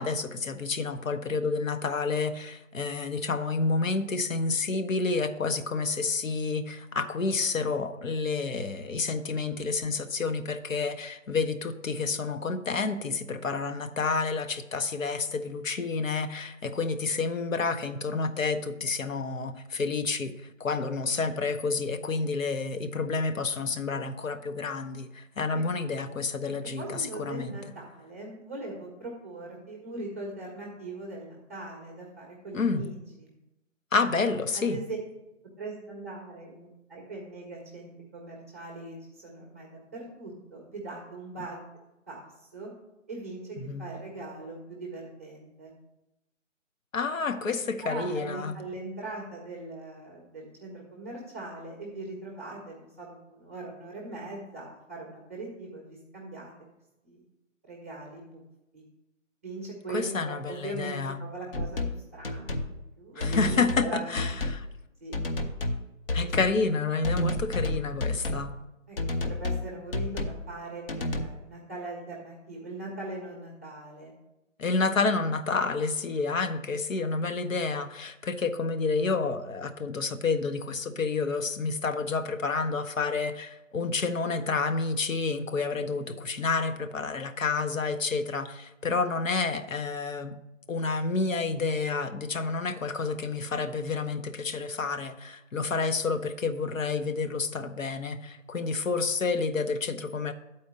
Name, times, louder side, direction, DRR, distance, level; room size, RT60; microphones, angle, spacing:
voice 1, 0.0-27.6 32.5-32.9 33.9-34.8 43.6-43.9 46.9-48.6 59.9-61.2 63.2-64.7 66.1-68.5 74.6-90.4 90.7-100.3, left 4 dB, 80° left, 8 dB, 0.8 m, -29 dB
voice 2, 26.8-33.3 34.5-35.0 35.6-41.6 42.1-42.7 43.1-45.8 47.4-47.6 47.8-56.5 57.0-57.2 57.6-58.4 58.7-58.8 59.4-61.8 62.1-64.1 65.0-65.2 66.2-66.3 68.9-69.0 69.3-74.1 86.0-86.1, right 2 dB, 10° right, -1 dB, 0.7 m, -40 dB
sound 1, 61.5-62.0 62.2-62.7 63.2-63.9 64.2-64.7 65.1-65.8 66.1-66.6 67.0-68.5 69.0-69.7 69.9-70.4 70.9-71.2, left 2 dB, 45° left, 0.7 m, -30 dB
8.0 x 4.3 x 6.3 m, 0.93 s
figure-of-eight pair, 150°, 39 cm